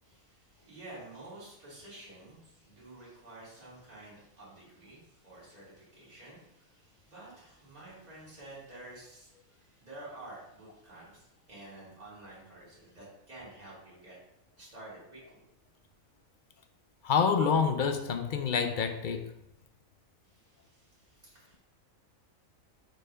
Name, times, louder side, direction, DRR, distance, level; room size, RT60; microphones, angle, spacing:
voice 1, 0.0-14.2 14.6-15.4 20.2-21.6, right 2 dB, 30° right, -8 dB, 2.6 m, -50 dB
voice 2, 17.0-19.3, left 6 dB, 60° left, 7 dB, 0.5 m, -27 dB
4.8 x 4.5 x 4.9 m, 0.83 s
omnidirectional pair, 1.4 m